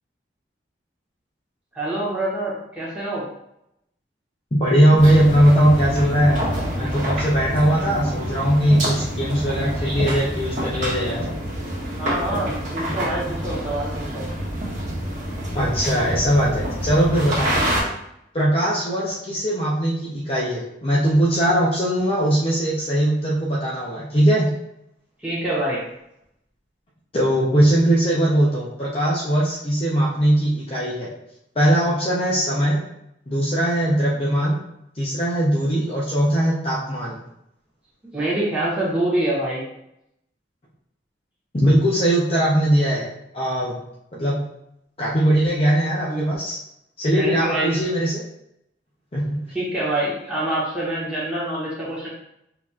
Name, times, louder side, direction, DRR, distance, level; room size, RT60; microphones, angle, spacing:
voice 1, 1.7-3.2 12.0-14.2 17.4-17.5 25.2-25.8 31.8-31.9 38.1-39.6 46.1-46.3 47.2-47.7 49.5-52.1, right 1 dB, 5° right, -9 dB, 1.4 m, -26 dB
voice 2, 4.5-6.4 6.8-11.2 15.5-17.5 18.3-24.5 27.1-31.1 31.6-32.8 33.3-34.6 35.0-37.2 41.5-43.1 43.3-43.8 44.1-44.4 45.0-46.6 47.0-48.2 49.1-49.4, right 1 dB, 30° left, -5 dB, 0.7 m, -20 dB
sound 1, 5.0-17.8, equal, 40° right, 1.5 m, -27 dB
6.2 x 2.9 x 2.4 m, 0.79 s
head